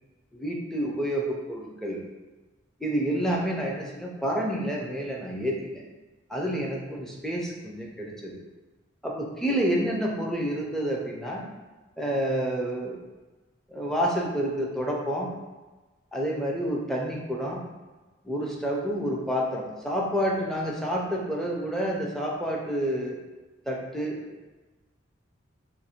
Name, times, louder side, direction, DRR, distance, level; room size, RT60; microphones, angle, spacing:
voice 1, 0.3-2.0 2.8-5.8 6.3-8.4 9.0-11.4 12.0-13.0 13.7-15.3 16.1-17.6 18.2-23.2 23.7-24.2, equal, ahead, -2 dB, 0.5 m, -29 dB
2.7 x 2.6 x 4.3 m, 1.2 s
head